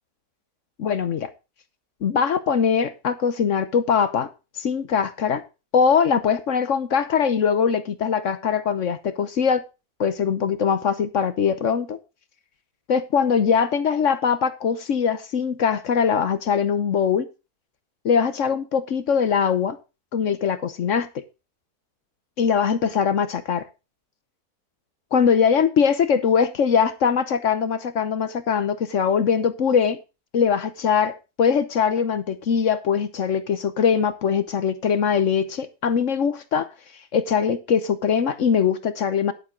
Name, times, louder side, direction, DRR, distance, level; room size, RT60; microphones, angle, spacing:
voice 1, 0.8-1.3 2.0-4.3 4.6-5.4 5.7-9.6 10.0-12.0 12.9-17.3 18.0-19.8 20.1-21.1 22.4-23.6 25.1-30.0 30.3-36.7 37.1-39.3, left 6 dB, 60° left, 1.1 m, -21 dB
10.5 x 9.3 x 3.8 m
omnidirectional pair, 1.6 m